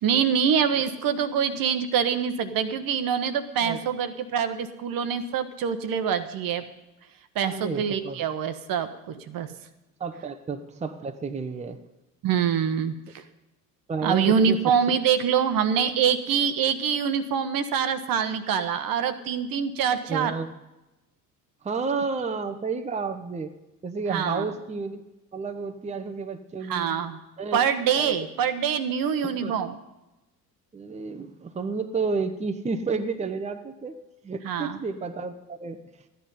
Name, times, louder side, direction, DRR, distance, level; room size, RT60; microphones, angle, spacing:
voice 1, 0.0-6.6 7.3-9.5 12.2-13.2 14.0-20.3 24.1-24.5 26.7-27.2 27.5-29.8 34.4-34.8, right 7 dB, 45° right, 10 dB, 1.1 m, -25 dB
voice 2, 7.4-8.2 10.0-11.8 13.9-14.6 20.1-20.5 21.6-23.5 23.8-25.0 25.3-26.9 27.4-27.6 27.9-28.2 29.4-29.5 30.7-34.0 34.2-35.8, right 4 dB, 15° right, 7 dB, 0.9 m, -31 dB
14.0 x 10.0 x 5.4 m, 0.98 s
figure-of-eight pair, 60°, 48 cm